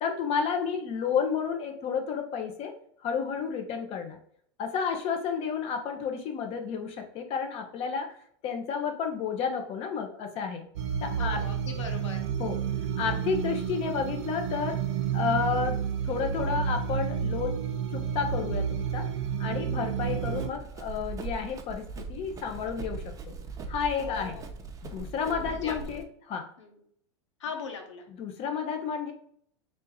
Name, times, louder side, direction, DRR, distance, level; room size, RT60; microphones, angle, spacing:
voice 1, 0.0-2.7 3.0-4.2 4.6-8.2 8.4-10.7 11.0-11.5 12.4-12.6 13.0-14.8 15.1-17.6 17.9-19.1 19.4-23.3 23.7-24.4 24.8-26.5 28.1-29.1, left 6 dB, 40° left, 5 dB, 0.9 m, -31 dB
sound 1, 10.8-20.5, right 8 dB, 75° right, 0.6 m, -30 dB
voice 2, 11.2-12.2 24.0-24.4 25.2-25.7 26.6-26.7 27.4-28.0, left 5 dB, 80° left, 4 dB, 1.0 m, -39 dB
Run, 20.0-26.0, right 4 dB, 20° right, 0.6 m, -40 dB
3.5 x 2.7 x 4.2 m, 0.65 s
hypercardioid pair, 110°, 15 cm